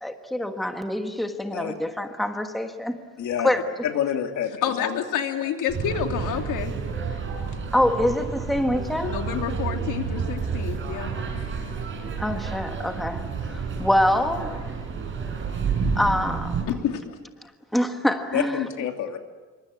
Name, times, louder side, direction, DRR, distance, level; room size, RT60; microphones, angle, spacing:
voice 1, 0.0-3.0 3.4-3.8 7.7-9.3 12.2-14.7 15.9-16.8 17.7-18.7, left 1 dB, ahead, 1.4 m, -25 dB
voice 2, 3.2-3.5 3.8-4.5 4.8-5.0 18.3-19.2, left 9 dB, 70° left, 2.9 m, -27 dB
voice 3, 4.5-6.7 9.0-11.1 16.7-17.2, left 9 dB, 85° left, 3.0 m, -29 dB
sound 1, 5.7-16.6, right 5 dB, 40° right, 6.0 m, -30 dB
27.5 x 25.0 x 8.5 m
cardioid pair, 175°, 30 cm